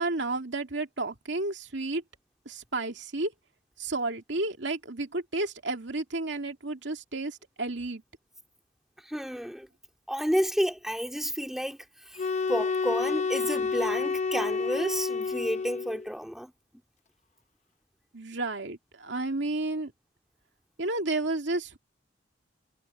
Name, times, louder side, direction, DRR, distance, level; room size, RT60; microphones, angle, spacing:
voice 1, 0.0-2.0 2.5-3.3 3.8-8.0 18.1-19.9 20.8-21.8, right 2 dB, 70° right, 2.5 m, -31 dB
voice 2, 9.0-9.7 10.1-11.8 12.1-16.5, equal, ahead, 2.5 m, -31 dB
sound 1, 12.2-16.1, left 4 dB, 40° left, 0.9 m, -29 dB
head